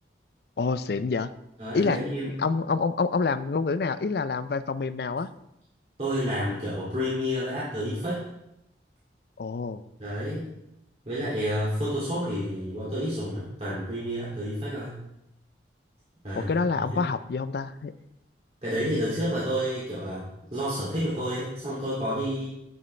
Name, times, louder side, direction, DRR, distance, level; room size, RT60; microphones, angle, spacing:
voice 1, 0.6-1.3 1.7-2.0 2.4-5.3 9.4-9.8 16.4-17.9, left 4 dB, 60° left, 14 dB, 0.4 m, -27 dB
voice 2, 1.6-2.4 6.0-8.2 10.0-10.5 11.0-15.0 16.2-17.1 18.6-20.2 20.5-22.5, equal, 35° right, -9 dB, 2.4 m, -30 dB
10.5 x 6.5 x 3.3 m, 0.83 s
head